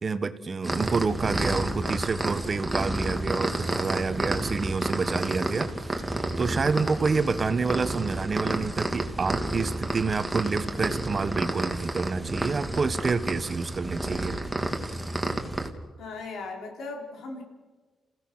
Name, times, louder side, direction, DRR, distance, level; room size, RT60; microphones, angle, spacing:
voice 1, 0.0-5.9 6.4-14.4, right 4 dB, 40° right, 10 dB, 1.4 m, -28 dB
sound 1, 0.6-15.7, right 1 dB, 10° right, 2.6 m, -30 dB
voice 2, 16.0-17.4, left 3 dB, 80° left, 1 dB, 4.5 m, -37 dB
28.5 x 16.5 x 6.3 m, 1.4 s
cardioid pair, 75°, 0 cm